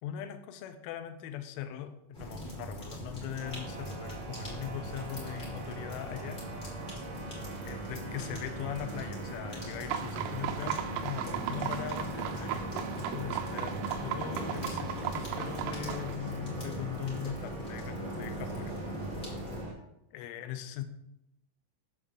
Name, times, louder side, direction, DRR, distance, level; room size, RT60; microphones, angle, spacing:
voice 1, 0.0-6.4 7.6-18.8 20.1-20.8, left 10 dB, 80° left, 8 dB, 3.1 m, -40 dB
sound 1, 2.1-19.6, equal, 40° left, 0.7 m, -40 dB
sound 2, 3.4-19.7, right 3 dB, 55° right, 2.2 m, -44 dB
sound 3, 9.9-16.2, right 10 dB, 85° right, 3.2 m, -36 dB
8.0 x 6.6 x 3.7 m, 0.82 s
omnidirectional pair, 5.8 m